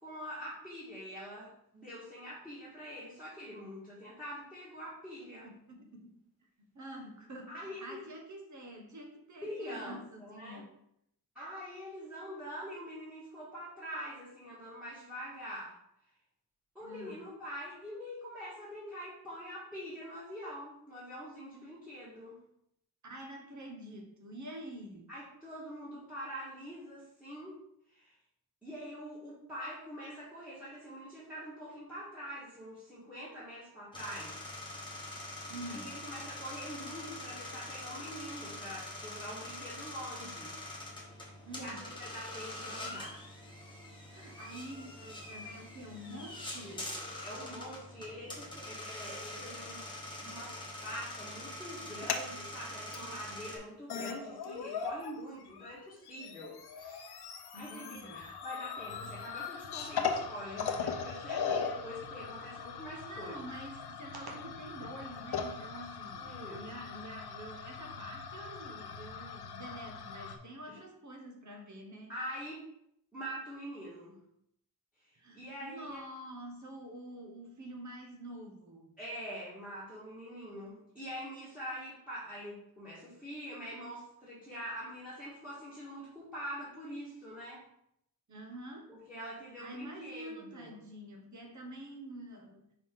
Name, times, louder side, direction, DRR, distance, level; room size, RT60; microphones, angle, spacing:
voice 1, 0.0-5.5 7.5-8.0 9.4-10.6 11.3-15.8 16.7-22.4 25.1-27.6 27.9-28.2 28.6-34.4 35.7-41.1 41.6-43.2 46.6-46.9 47.2-49.9 50.2-57.2 57.5-63.4 66.2-66.6 70.7-70.8 72.1-72.7 73.1-74.2 75.0-76.0 79.0-87.6 88.9-90.8, equal, 5° right, -10 dB, 1.7 m, -44 dB
voice 2, 5.4-6.2 6.7-10.7 16.8-17.3 23.0-25.1 35.5-36.0 41.4-41.8 44.1-46.9 57.5-58.3 62.9-72.1 75.1-78.9 88.3-88.9 89.6-92.6, right 1 dB, 50° right, 2 dB, 1.2 m, -47 dB
sound 1, 33.9-53.6, left 1 dB, 10° left, 1.2 m, -44 dB
sound 2, 51.8-52.3 52.9-53.0 53.6-53.7 53.9-55.1 55.4-70.4, left 6 dB, 80° left, 0.7 m, -39 dB
sound 3, 61.2-66.8, right 3 dB, 90° right, 1.1 m, -58 dB
5.2 x 4.8 x 3.7 m, 0.75 s
wide cardioid pair, 160°, 38 cm